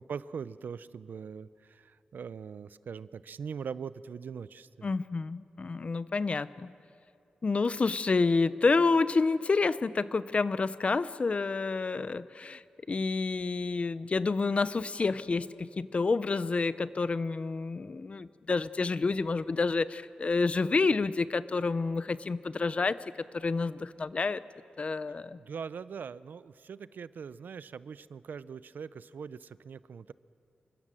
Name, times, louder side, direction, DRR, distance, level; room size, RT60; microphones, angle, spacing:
voice 1, 0.0-4.9 25.4-30.1, right 6 dB, 75° right, 17 dB, 0.6 m, -41 dB
voice 2, 4.8-6.7 7.4-23.0 23.3-24.4 24.8-25.4, left 4 dB, 40° left, 15 dB, 0.7 m, -29 dB
28.0 x 24.0 x 7.6 m, 2.5 s
wide cardioid pair, 125°, 3 cm